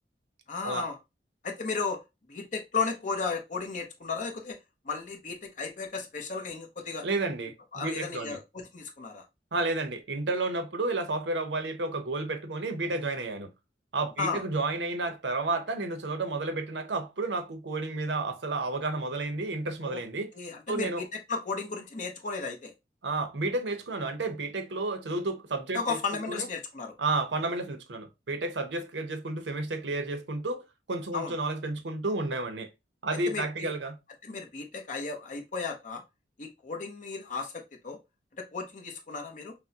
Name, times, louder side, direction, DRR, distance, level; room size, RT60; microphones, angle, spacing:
voice 1, 0.5-1.0 1.4-2.0 2.3-4.6 4.8-7.1 7.7-9.2 14.2-14.4 19.8-20.0 20.4-22.7 25.7-26.9 31.1-31.4 33.3-33.7 34.2-36.0 36.4-38.0 38.4-39.5, left 4 dB, 45° left, 0.8 m, -34 dB
voice 2, 7.0-8.4 9.5-13.5 13.9-20.3 20.7-21.0 23.0-25.8 26.3-26.5 27.0-30.6 30.9-32.7 33.0-34.0, right 2 dB, 75° right, 0.8 m, -31 dB
5.9 x 2.1 x 2.8 m
head